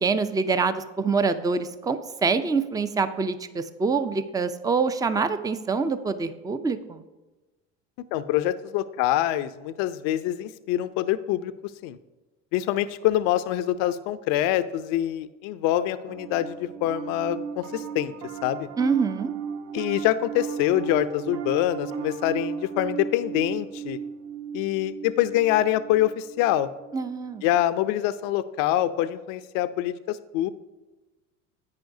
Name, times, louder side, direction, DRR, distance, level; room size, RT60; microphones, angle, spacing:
voice 1, 0.0-7.0 18.8-19.3 26.9-27.4, right 4 dB, 10° right, 12 dB, 0.5 m, -25 dB
voice 2, 8.1-11.5 11.8-12.0 12.5-18.1 18.4-18.7 19.7-24.0 24.5-26.7 27.4-30.5, left 13 dB, 60° left, 13 dB, 0.6 m, -25 dB
Piano, 16.1-27.6, right 7 dB, 60° right, 1.0 m, -36 dB
10.5 x 8.6 x 2.7 m, 1.1 s
hypercardioid pair, 80°, 38 cm